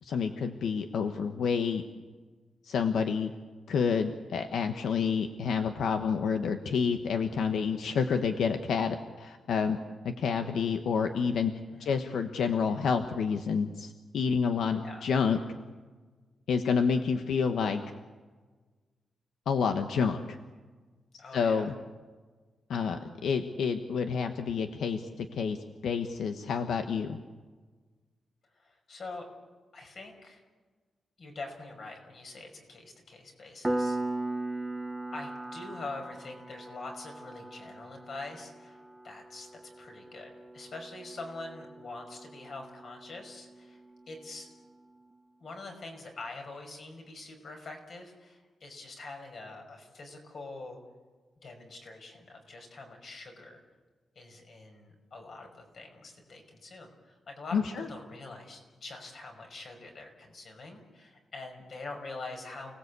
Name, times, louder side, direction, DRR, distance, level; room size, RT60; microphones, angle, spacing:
voice 1, 0.0-1.8 2.6-3.3 3.7-9.8 10.0-11.5 11.8-15.4 16.5-17.8 19.5-20.4 21.3-21.7 22.7-25.6 25.8-27.2 57.5-57.9, left 6 dB, 85° left, 6 dB, 1.3 m, -29 dB
voice 2, 21.2-21.7 28.5-29.3 29.7-30.4 31.2-34.0 35.1-43.8 44.1-44.5 45.4-50.8 51.4-53.6 54.2-62.8, left 3 dB, 50° left, 3 dB, 5.4 m, -44 dB
Piano, 33.6-44.0, right 2 dB, 10° right, 0.9 m, -39 dB
30.0 x 19.0 x 8.3 m, 1.4 s
wide cardioid pair, 160°, 0 cm